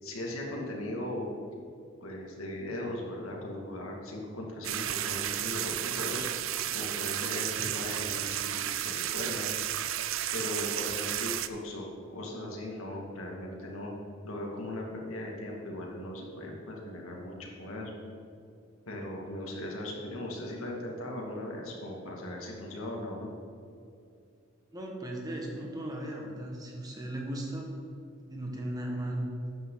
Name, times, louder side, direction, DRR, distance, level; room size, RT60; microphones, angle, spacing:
voice 1, 0.0-1.3 2.0-6.3 6.7-9.4 10.3-13.9 14.2-18.0 18.9-23.3, left 1 dB, 90° left, -1 dB, 2.2 m, -38 dB
sound 1, 4.6-11.5, right 12 dB, 75° right, 0.5 m, -33 dB
voice 2, 24.7-27.7 28.3-29.3, right 1 dB, 20° right, 0 dB, 1.6 m, -36 dB
12.5 x 9.4 x 3.9 m, 2.5 s
head